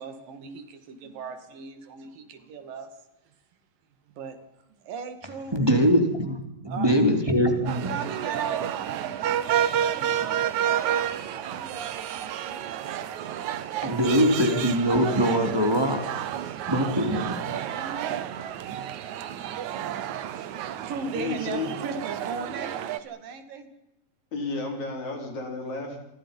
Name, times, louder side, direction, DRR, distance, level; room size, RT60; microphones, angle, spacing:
voice 1, 0.0-2.9 3.3-3.4 4.1-4.4 4.7-5.5 6.7-6.9 7.9-13.4 17.4-18.5 18.9-19.5 19.8-23.7, right 5 dB, 85° right, 9 dB, 3.8 m, -38 dB
voice 2, 5.5-7.9 13.8-16.1 16.7-17.6, equal, 5° right, 4 dB, 3.1 m, -23 dB
sound 1, 7.7-23.0, right 10 dB, 70° right, 2.3 m, -30 dB
voice 3, 21.1-21.7 24.3-26.0, left 3 dB, 55° left, 2 dB, 5.7 m, -32 dB
27.5 x 23.5 x 5.5 m, 0.91 s
omnidirectional pair, 3.9 m